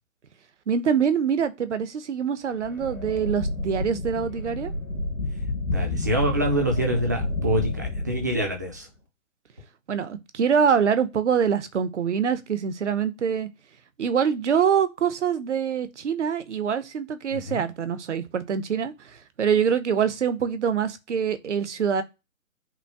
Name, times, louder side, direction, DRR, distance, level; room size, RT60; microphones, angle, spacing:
voice 1, 0.7-4.7 9.9-13.5 14.0-18.9 19.4-22.0, right 7 dB, 60° right, 0.8 m, -24 dB
sound 1, 2.6-8.7, left 2 dB, 85° left, 1.9 m, -30 dB
voice 2, 5.7-8.9 17.3-17.6, right 1 dB, 15° right, 0.4 m, -26 dB
5.7 x 2.3 x 3.5 m
figure-of-eight pair, 135°, 40 cm